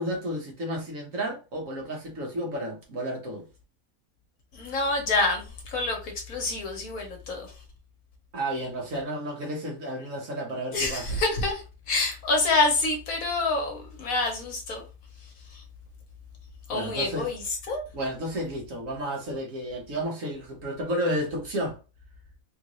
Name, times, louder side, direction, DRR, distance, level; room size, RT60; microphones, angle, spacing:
voice 1, 0.0-3.4 8.3-11.1 16.7-17.3 17.9-21.8, equal, 60° right, 1.5 m, -32 dB
voice 2, 4.5-7.5 10.7-14.8 15.5-15.6 16.7-17.8, left 3 dB, 70° left, 1.5 m, -27 dB
3.7 x 2.6 x 3.0 m
omnidirectional pair, 1.6 m